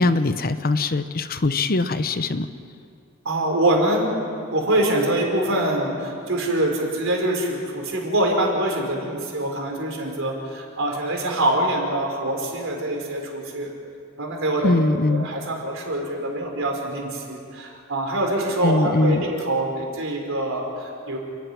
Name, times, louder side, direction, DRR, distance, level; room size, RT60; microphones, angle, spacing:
voice 1, 0.0-2.5 14.6-15.3 18.6-19.2, left 2 dB, 45° left, 11 dB, 0.8 m, -21 dB
voice 2, 3.2-4.1 4.5-13.7 14.2-14.8 15.1-21.2, right 1 dB, 65° right, 1 dB, 4.5 m, -24 dB
28.0 x 11.5 x 9.8 m, 2.6 s
head